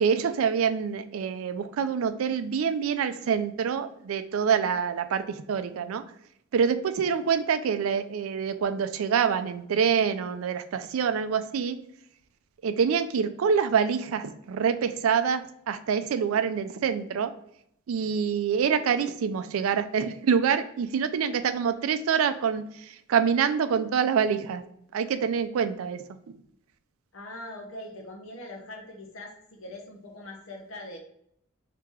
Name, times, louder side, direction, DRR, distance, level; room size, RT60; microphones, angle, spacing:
voice 1, 0.0-6.0 6.5-11.8 12.6-17.3 17.9-24.6 24.9-26.0, right 7 dB, 80° right, 10 dB, 0.4 m, -26 dB
voice 2, 27.1-31.0, left 1 dB, 70° left, 3 dB, 0.8 m, -42 dB
3.1 x 2.8 x 3.5 m, 0.72 s
head